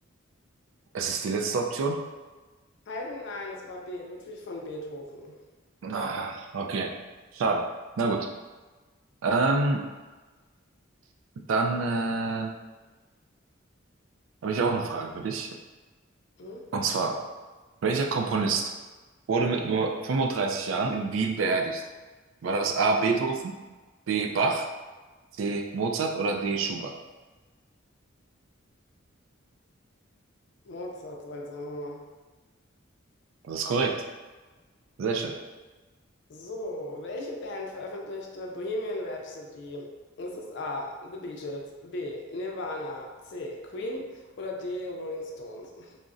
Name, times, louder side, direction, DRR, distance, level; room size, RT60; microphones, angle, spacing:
voice 1, 0.9-2.0 5.8-6.9 7.3-8.3 9.2-9.8 11.5-12.5 14.4-15.5 16.7-17.2 17.8-18.7 19.3-21.9 22.4-23.5 24.1-24.7 25.4-27.0 33.4-34.0 35.0-35.4, right 4 dB, 75° right, 3 dB, 0.3 m, -27 dB
voice 2, 2.9-5.4 16.4-16.6 22.4-22.7 30.6-32.0 36.3-39.9 40.2-46.0, left 1 dB, 65° left, 1 dB, 0.5 m, -37 dB
3.8 x 2.1 x 2.4 m, 1.3 s
head